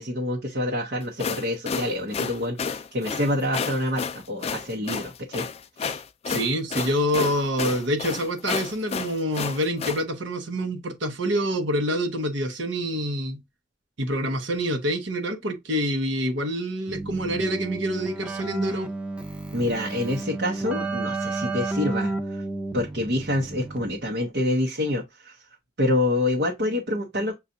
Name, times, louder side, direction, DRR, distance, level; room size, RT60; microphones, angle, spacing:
voice 1, 0.0-5.5 5.8-6.0 19.5-22.4 22.7-25.4 25.8-27.3, left 1 dB, 60° right, 0.8 m, -27 dB
sound 1, 1.0-10.0, left 5 dB, 35° left, 0.3 m, -31 dB
voice 2, 6.3-13.4 14.0-18.9, equal, 85° right, 0.9 m, -26 dB
Keyboard (musical), 16.9-24.2, right 2 dB, 5° right, 0.6 m, -32 dB
6.8 x 2.4 x 2.6 m
head